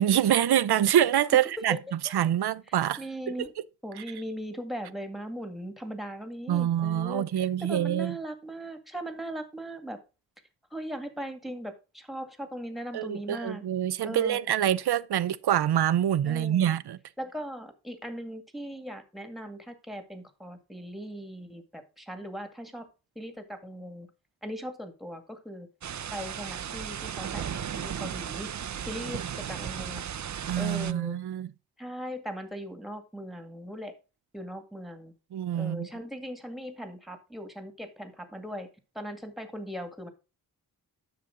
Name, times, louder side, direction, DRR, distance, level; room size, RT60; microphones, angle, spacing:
voice 1, 0.0-3.5 3.9-4.0 6.5-8.2 12.9-17.0 30.5-31.5 35.3-35.9, right 11 dB, 90° right, 0.6 m, -26 dB
voice 2, 3.0-3.5 3.8-10.0 10.7-13.6 14.0-14.4 16.3-16.7 17.2-22.9 23.2-24.1 24.4-25.7 26.1-28.5 28.9-30.0 30.6-31.2 31.8-33.9 34.3-35.1 35.5-38.7 39.0-40.1, equal, ahead, 2.0 m, -39 dB
sound 1, 25.8-30.9, right 8 dB, 50° right, 0.6 m, -35 dB
10.5 x 6.9 x 3.8 m
wide cardioid pair, 80°, 38 cm